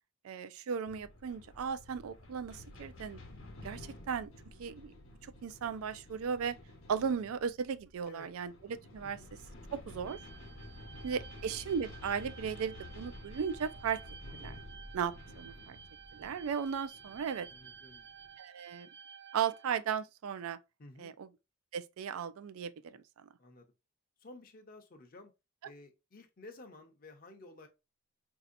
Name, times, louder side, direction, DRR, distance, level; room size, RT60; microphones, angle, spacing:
voice 1, 0.2-3.2 3.6-4.3 4.6-4.9 5.2-6.6 6.9-9.2 9.7-10.2 11.0-14.0 14.4-14.6 14.9-15.8 16.1-17.5 18.4-18.9 19.3-20.6 21.0-21.3 21.7-23.3, right 7 dB, 80° right, 0.4 m, -36 dB
sound 1, 0.8-18.4, left 2 dB, 65° left, 0.9 m, -51 dB
voice 2, 3.7-4.0 8.1-8.3 9.0-9.3 10.9-11.2 17.5-18.1 20.8-21.1 23.4-23.7 24.2-25.3 25.6-27.7, left 2 dB, 40° left, 0.6 m, -54 dB
sound 2, 10.1-19.7, right 7 dB, 50° right, 0.7 m, -53 dB
4.2 x 2.7 x 2.5 m
head